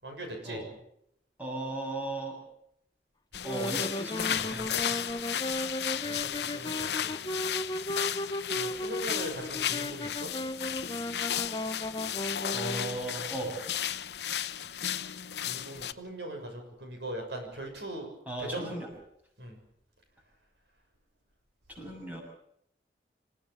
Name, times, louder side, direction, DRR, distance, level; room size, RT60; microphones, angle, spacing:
voice 1, 0.0-0.6 6.0-7.1 7.3-7.5 8.5-10.3 15.4-18.1 18.5-18.7 19.4-19.6, right 1 dB, 80° right, 4 dB, 6.6 m, -40 dB
voice 2, 1.4-2.4 3.4-5.0 12.5-13.5 18.3-18.9 21.7-22.2, right 1 dB, 10° right, 0 dB, 7.2 m, -36 dB
sound 1, 3.3-15.9, left 10 dB, 75° left, 0.8 m, -34 dB
Wind instrument woodwind instrument, 3.3-13.0, left 1 dB, 25° left, 0.8 m, -36 dB
27.5 x 16.5 x 7.1 m, 0.73 s
head